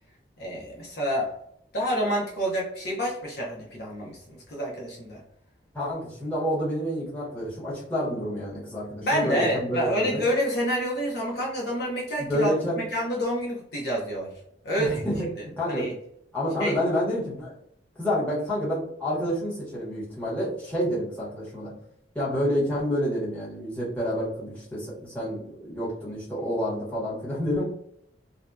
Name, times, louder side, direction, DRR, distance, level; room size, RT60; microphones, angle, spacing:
voice 1, 0.4-1.3 1.7-5.2 9.0-12.5 12.8-14.3 14.6-15.0 15.7-15.9 16.6-16.8, equal, 60° left, -2 dB, 0.7 m, -28 dB
voice 2, 5.7-10.2 12.2-12.8 14.8-15.3 15.6-15.9 16.3-17.5 18.0-21.7 22.1-27.6, equal, 10° left, -8 dB, 1.0 m, -28 dB
2.6 x 2.2 x 2.2 m, 0.72 s
head